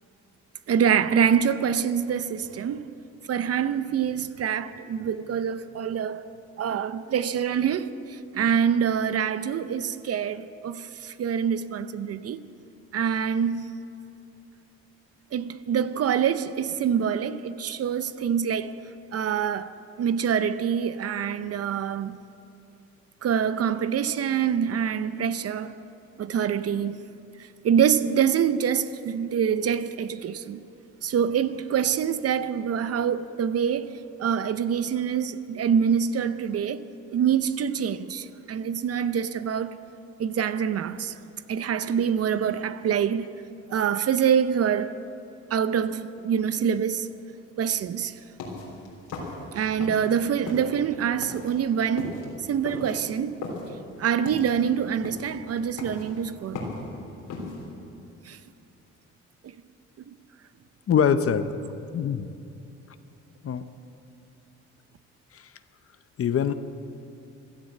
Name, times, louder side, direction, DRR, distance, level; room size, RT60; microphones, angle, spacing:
voice 1, 0.7-2.9 3.3-6.2 6.6-12.4 12.9-13.7 15.3-18.7 19.1-22.2 23.2-25.7 26.2-27.0 27.6-30.6 31.0-39.8 40.2-41.1 41.5-43.3 43.7-44.9 45.5-47.1 47.6-48.2 49.5-52.2 52.5-53.4 54.0-56.6 58.3-58.4 60.1-60.2, right 8 dB, 55° right, 0.7 m, -25 dB
sound 1, 48.1-50.2 50.4-57.6, left 3 dB, 85° left, 3.6 m, -37 dB
voice 2, 60.9-61.5 61.9-62.3 63.4-63.6 65.3-65.5 66.2-66.5, left 7 dB, 50° left, 0.8 m, -23 dB
16.0 x 11.5 x 7.6 m
cardioid pair, 90°, 30 cm